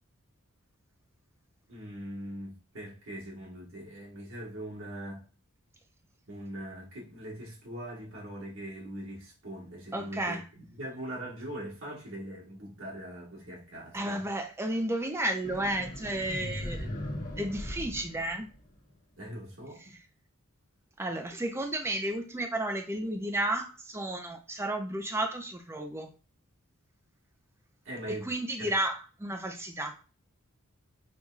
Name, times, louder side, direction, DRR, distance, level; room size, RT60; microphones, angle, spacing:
voice 1, 1.7-5.2 6.3-14.2 19.2-19.9 27.8-28.3 28.6-28.7, right 1 dB, 60° right, 1.5 m, -41 dB
voice 2, 9.9-10.4 13.9-16.9 17.4-18.5 21.0-26.1 28.2-29.9, right 1 dB, 10° right, 0.5 m, -32 dB
sound 1, 15.4-18.9, left 1 dB, 40° left, 1.4 m, -38 dB
5.4 x 2.8 x 2.4 m
head